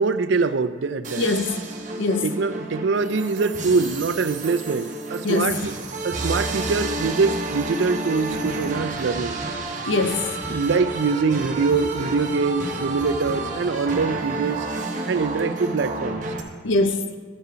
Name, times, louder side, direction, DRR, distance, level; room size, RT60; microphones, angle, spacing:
voice 1, 0.0-1.3 2.2-5.7 6.0-9.4 10.5-14.7 15.1-16.2, right 4 dB, 70° right, 12 dB, 0.4 m, -23 dB
sound 1, 1.0-16.4, right 2 dB, 45° right, 1.1 m, -30 dB
voice 2, 1.2-1.6 2.0-2.3 5.2-5.7 9.8-10.6 16.6-17.1, left 3 dB, 85° left, 8 dB, 0.7 m, -23 dB
13.5 x 5.5 x 5.1 m, 1.5 s
head